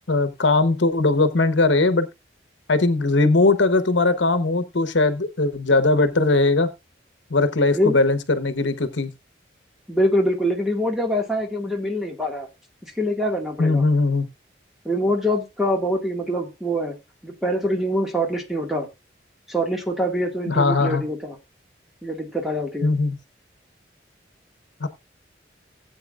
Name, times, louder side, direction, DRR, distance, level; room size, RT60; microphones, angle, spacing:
voice 1, 0.1-2.1 2.7-6.7 7.3-9.1 13.6-14.3 20.5-21.0 22.8-23.2 24.8-24.9, left 3 dB, 85° left, 1.1 m, -19 dB
voice 2, 9.9-12.5 12.8-13.8 14.8-17.0 17.2-18.9 19.5-21.4 22.0-22.9, equal, ahead, 1.9 m, -24 dB
16.5 x 8.1 x 2.5 m
head